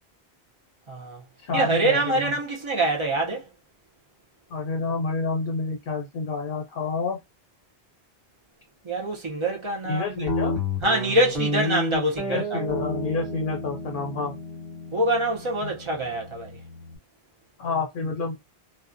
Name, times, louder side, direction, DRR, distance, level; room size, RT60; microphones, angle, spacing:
voice 1, 0.9-1.2 1.5-3.5 8.8-10.3 10.8-12.6 14.9-16.5, right 1 dB, 40° right, 0.5 m, -25 dB
voice 2, 1.4-2.3 4.5-7.2 9.8-10.6 12.3-14.3 15.6-15.7 17.6-18.4, left 4 dB, 60° left, 0.7 m, -29 dB
Guitar, 10.3-17.0, left 1 dB, 65° right, 1.3 m, -31 dB
2.4 x 2.1 x 2.5 m
omnidirectional pair, 1.1 m